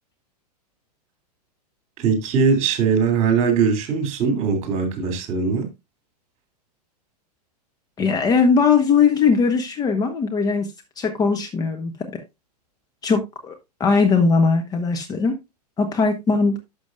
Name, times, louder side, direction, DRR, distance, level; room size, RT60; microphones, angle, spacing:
voice 1, 2.0-5.7, right 5 dB, 35° right, 3.1 m, -20 dB
voice 2, 8.0-10.7 11.0-11.9 13.0-13.5 13.8-15.3 15.8-16.6, left 5 dB, 20° left, 1.1 m, -19 dB
11.5 x 6.4 x 2.5 m
figure-of-eight pair, 105°, 21 cm